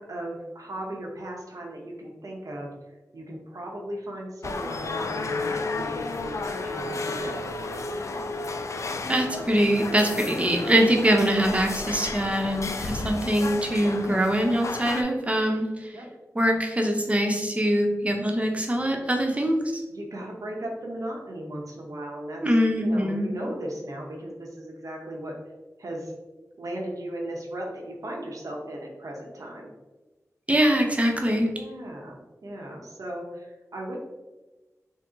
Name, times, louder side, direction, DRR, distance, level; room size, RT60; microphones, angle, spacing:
voice 1, 0.0-2.7 3.1-7.3 7.6-7.8 13.8-13.9 15.9-16.1 19.9-25.3 25.8-26.1 26.6-29.7 31.5-34.0, right 1 dB, 75° right, -1 dB, 0.8 m, -37 dB
sound 1, 4.4-15.0, left 3 dB, 60° left, 0.3 m, -32 dB
voice 2, 9.1-16.0 16.3-19.8 22.4-23.4 30.5-31.5, equal, 20° right, 2 dB, 0.7 m, -23 dB
3.7 x 2.1 x 3.8 m, 1.1 s
wide cardioid pair, 55°, 6 cm